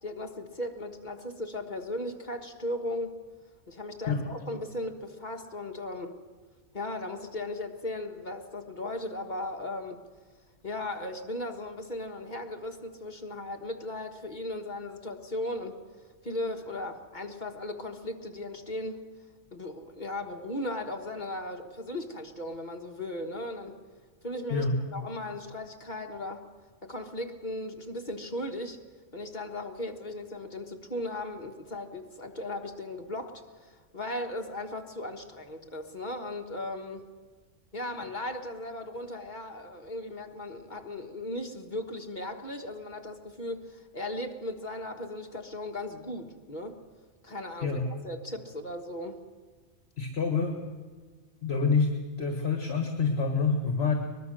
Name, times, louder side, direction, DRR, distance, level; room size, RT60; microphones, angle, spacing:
voice 1, 0.0-3.2 3.7-6.2 6.7-10.0 10.6-15.8 16.2-19.0 19.5-23.8 24.2-26.4 26.8-28.8 29.1-37.1 37.7-46.8 47.2-49.2, left 1 dB, 35° left, 3 dB, 1.5 m, -37 dB
voice 2, 50.0-50.6 51.4-51.9 52.2-53.9, left 4 dB, 55° left, 4 dB, 1.9 m, -27 dB
23.0 x 21.0 x 6.5 m, 1.5 s
omnidirectional pair, 1.3 m